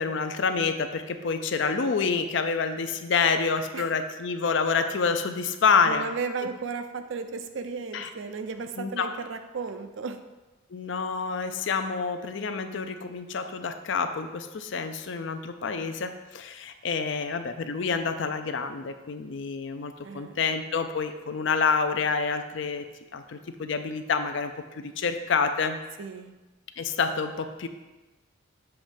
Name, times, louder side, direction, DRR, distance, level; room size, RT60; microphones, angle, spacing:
voice 1, 0.0-6.1 7.9-8.1 8.8-9.1 10.7-22.9 23.1-25.8 26.8-27.7, left 5 dB, 60° left, 8 dB, 0.4 m, -28 dB
voice 2, 5.9-10.2 20.0-20.4 26.0-26.4, right 5 dB, 65° right, 8 dB, 0.5 m, -35 dB
7.0 x 3.1 x 5.1 m, 1.1 s
head